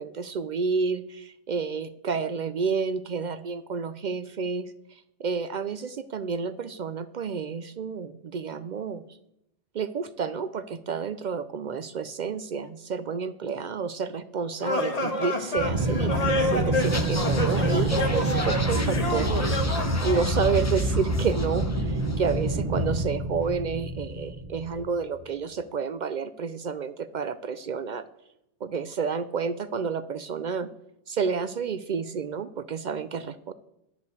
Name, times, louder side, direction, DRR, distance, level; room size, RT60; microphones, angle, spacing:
voice 1, 0.0-9.0 9.7-28.1 28.6-30.7 31.1-33.5, right 5 dB, 60° right, 13 dB, 0.5 m, -30 dB
sound 1, 14.6-20.3, left 1 dB, 35° left, 1.4 m, -28 dB
Aircraft, 15.6-25.0, right 1 dB, 30° right, 1.1 m, -27 dB
sound 2, 16.8-22.5 22.8-23.0, left 2 dB, 20° left, 0.6 m, -37 dB
10.5 x 5.0 x 8.1 m, 0.82 s
omnidirectional pair, 1.2 m